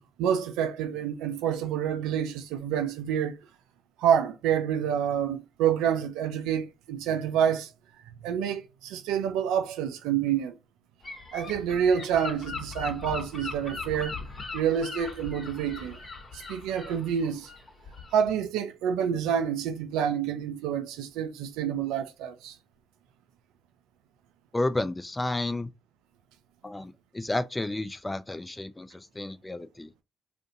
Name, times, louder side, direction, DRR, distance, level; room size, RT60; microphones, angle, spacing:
voice 1, 0.0-3.4 4.0-7.7 8.2-10.6 11.3-14.2 14.5-16.0 16.3-17.5 18.1-22.6, right 8 dB, 80° right, 0.4 m, -28 dB
Gull seagull / Wind, 11.0-18.3, left 4 dB, 40° left, 1.3 m, -40 dB
voice 2, 24.5-25.7 26.6-29.9, left 2 dB, 20° left, 0.5 m, -31 dB
2.6 x 2.5 x 3.6 m
hypercardioid pair, 50°, 0 cm